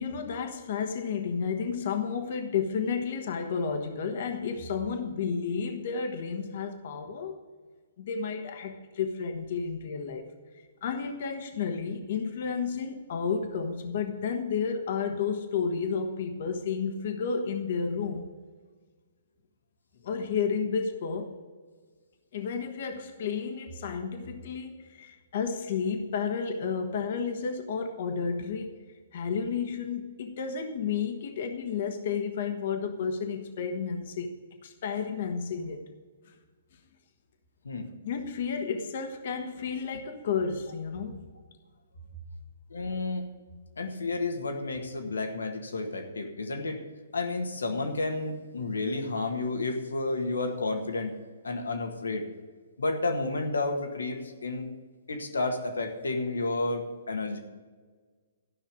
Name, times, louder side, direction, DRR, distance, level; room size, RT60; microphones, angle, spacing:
voice 1, 0.0-7.4 8.0-10.3 10.8-18.3 20.0-21.3 22.3-28.7 29.1-34.3 34.6-35.8 36.3-36.4 38.0-41.3, left 6 dB, 55° left, 5 dB, 1.4 m, -31 dB
voice 2, 42.7-43.2 43.8-46.8 47.1-51.2 51.4-52.3 52.8-54.7 55.1-57.4, left 2 dB, 80° left, 5 dB, 1.7 m, -31 dB
13.5 x 5.8 x 8.4 m, 1.5 s
figure-of-eight pair, 125°, 0 cm